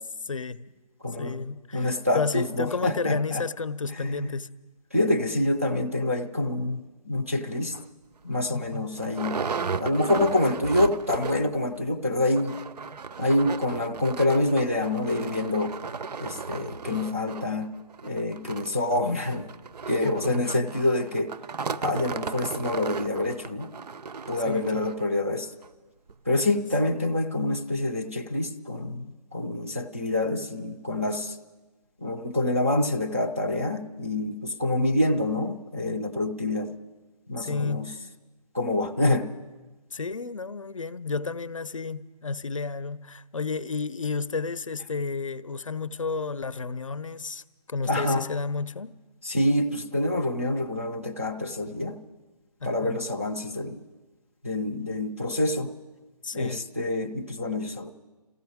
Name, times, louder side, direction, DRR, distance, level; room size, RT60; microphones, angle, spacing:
voice 1, 0.3-0.7 1.2-1.9 2.1-4.5 8.5-8.9 20.0-20.4 24.5-24.9 37.4-38.0 39.9-47.4 47.7-48.9 52.6-53.0 56.2-56.6, left 4 dB, 50° left, 0.5 m, -31 dB
voice 2, 1.0-1.5 1.7-3.4 4.0-4.3 4.9-7.8 8.2-9.4 9.8-12.6 13.2-15.7 16.2-17.7 18.0-19.5 19.9-21.3 21.7-23.7 24.3-25.5 26.3-29.1 29.3-31.4 32.0-36.7 37.3-37.9 38.5-39.3 47.9-48.2 49.2-52.0 52.6-53.8 54.4-55.7 56.3-57.9, left 1 dB, 20° right, 0.4 m, -26 dB
sound 1, 7.7-7.9 8.3-8.4 8.6-11.6 11.9-12.0 12.2-25.0 25.6-25.7 26.1-26.2, right 5 dB, 75° right, 0.5 m, -35 dB
27.5 x 15.0 x 3.5 m
hypercardioid pair, 180°, 21 cm